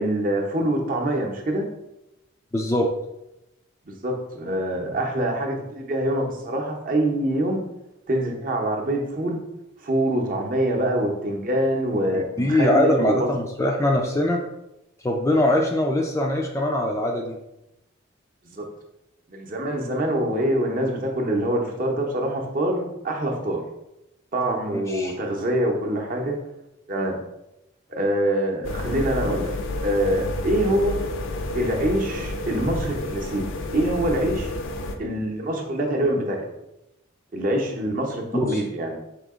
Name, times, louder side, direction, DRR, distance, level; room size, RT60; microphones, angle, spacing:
voice 1, 0.0-1.7 3.9-7.6 8.1-9.4 9.8-13.3 18.4-18.7 19.3-23.6 24.3-26.4 26.9-27.2 27.9-29.5 29.8-31.0 31.5-33.4 33.7-34.5 35.0-36.4 37.3-39.0, right 1 dB, 40° right, 1 dB, 0.7 m, -25 dB
voice 2, 2.5-2.9 12.1-14.4 15.0-17.4 24.4-25.1 38.3-38.6, left 1 dB, 15° left, 1 dB, 0.3 m, -22 dB
sound 1, 28.6-35.0, left 2 dB, 70° left, 0.5 m, -30 dB
5.0 x 2.8 x 3.6 m, 0.89 s
head